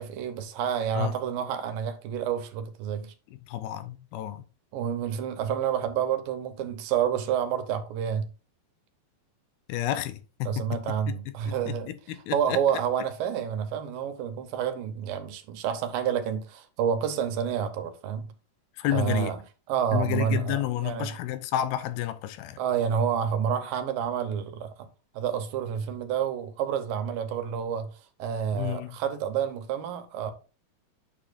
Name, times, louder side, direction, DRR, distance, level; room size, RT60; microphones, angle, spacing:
voice 1, 0.0-3.1 4.7-8.3 10.4-18.3 18.9-19.4 19.7-21.2 22.6-24.9 25.1-30.3, right 8 dB, 75° right, 2.5 m, -29 dB
voice 2, 3.5-4.4 9.7-10.6 11.5-12.6 18.8-19.3 19.9-22.6 28.5-29.0, left 13 dB, 90° left, 2.7 m, -30 dB
9.1 x 7.1 x 2.5 m
omnidirectional pair, 4.3 m